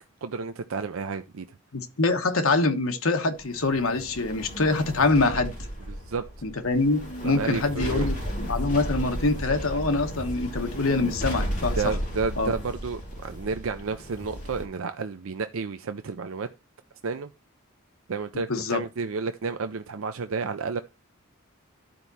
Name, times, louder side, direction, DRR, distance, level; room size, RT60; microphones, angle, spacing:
voice 1, 0.2-1.5 5.9-6.2 7.2-8.1 11.7-16.5 17.0-17.3 18.1-20.8, right 4 dB, 70° right, 0.5 m, -31 dB
voice 2, 1.7-5.5 6.4-12.0 12.4-12.5 18.5-18.8, left 3 dB, 80° left, 1.2 m, -25 dB
sound 1, 3.4-14.6, equal, 40° left, 4.9 m, -34 dB
12.0 x 4.7 x 4.1 m
head